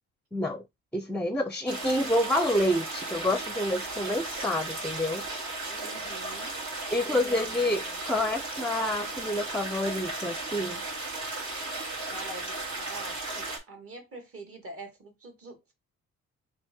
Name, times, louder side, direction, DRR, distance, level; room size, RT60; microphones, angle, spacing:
voice 1, 0.3-0.6 0.9-5.2 6.9-10.8, left 1 dB, 5° left, 0.5 m, -28 dB
sound 1, 1.7-13.6, right 2 dB, 70° right, 1.9 m, -35 dB
voice 2, 5.7-6.6 7.1-8.0 12.1-15.7, right 2 dB, 50° right, 1.9 m, -45 dB
3.5 x 2.6 x 4.4 m
cardioid pair, 90°, 30 cm